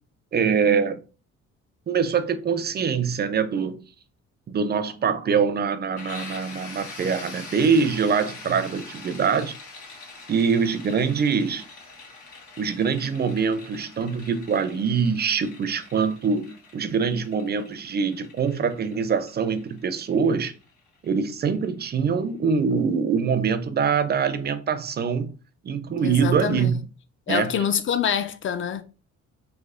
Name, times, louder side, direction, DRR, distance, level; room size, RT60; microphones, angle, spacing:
voice 1, 0.3-1.0 1.9-3.8 4.5-9.6 10.3-11.6 12.6-20.5 21.0-25.3 25.6-26.8 27.3-27.5, right 6 dB, 35° right, 0.5 m, -24 dB
sound 1, 6.0-21.6, left 3 dB, 75° left, 1.1 m, -44 dB
voice 2, 26.0-26.7 27.3-28.8, left 8 dB, 40° left, 0.5 m, -26 dB
3.3 x 2.0 x 3.6 m
cardioid pair, 90°, 30 cm